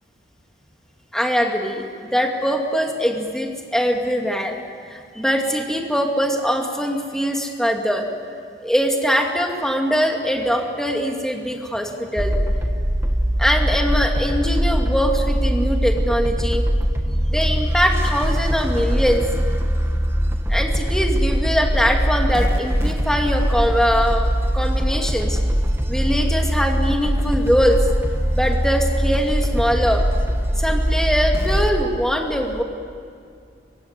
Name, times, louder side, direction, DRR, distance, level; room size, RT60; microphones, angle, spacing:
voice 1, 1.1-1.8 2.1-4.6 4.9-8.1 8.6-12.3 13.4-16.6 17.3-19.2 20.5-25.4 25.9-27.8 28.3-30.0 30.6-32.6, equal, 5° left, 1 dB, 2.5 m, -22 dB
sound 1, 12.2-31.8, equal, 15° right, 1.4 m, -21 dB
24.5 x 23.5 x 9.7 m, 2.3 s
head